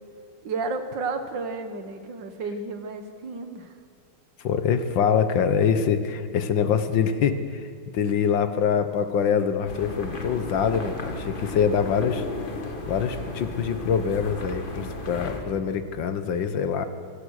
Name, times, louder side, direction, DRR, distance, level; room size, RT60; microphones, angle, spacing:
voice 1, 0.4-3.7, right 3 dB, 60° right, 8 dB, 2.0 m, -32 dB
voice 2, 4.4-7.7 7.9-12.3 12.9-16.9, left 7 dB, 60° left, 10 dB, 1.7 m, -24 dB
sound 1, 9.7-15.4, left 2 dB, 25° left, 1.6 m, -34 dB
25.5 x 17.0 x 6.5 m, 2.1 s
omnidirectional pair, 2.4 m